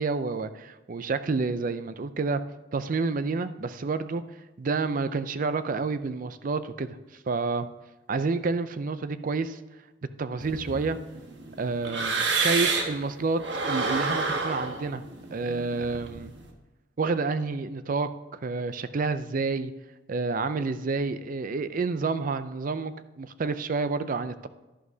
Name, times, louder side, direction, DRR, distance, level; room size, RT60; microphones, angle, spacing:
voice 1, 0.0-2.4 2.7-4.2 4.6-7.0 7.3-7.7 8.1-9.6 10.2-11.0 11.6-15.0 15.3-16.3 17.0-19.7 20.1-24.5, right 4 dB, 45° right, 12 dB, 0.4 m, -29 dB
sound 1, 10.4-13.0 13.4-16.4, right 4 dB, 65° right, 1.3 m, -29 dB
11.5 x 11.0 x 2.7 m, 1.1 s
head